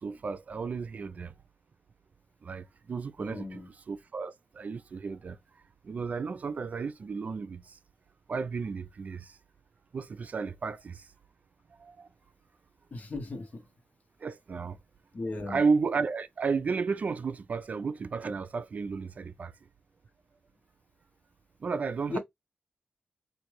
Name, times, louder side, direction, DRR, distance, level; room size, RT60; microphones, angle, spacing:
voice 1, 0.0-1.3 2.4-5.4 5.8-7.8 8.3-9.4 9.9-11.1 11.7-12.1 14.2-14.8 15.5-19.5 21.6-22.2, right 5 dB, 50° right, 0.3 m, -33 dB
voice 2, 3.2-3.7 12.9-13.6 15.1-15.6 22.1-22.2, left 2 dB, 45° left, 1.0 m, -36 dB
4.6 x 2.6 x 3.1 m
wide cardioid pair, 145°, 3 cm